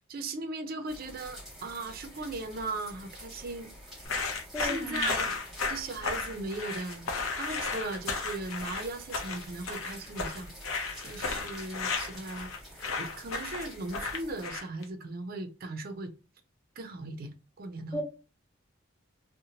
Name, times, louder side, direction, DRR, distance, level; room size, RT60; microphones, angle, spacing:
voice 1, 0.1-3.7 4.6-5.4 5.7-12.5 13.0-16.1 16.8-18.0, right 2 dB, 45° right, 0.5 m, -38 dB
sound 1, 0.9-14.5, equal, ahead, 1.0 m, -48 dB
sound 2, 4.0-14.8, left 4 dB, 90° left, 0.6 m, -34 dB
voice 2, 4.5-5.1 17.9-18.0, left 1 dB, 20° left, 0.7 m, -34 dB
2.8 x 2.1 x 2.7 m
head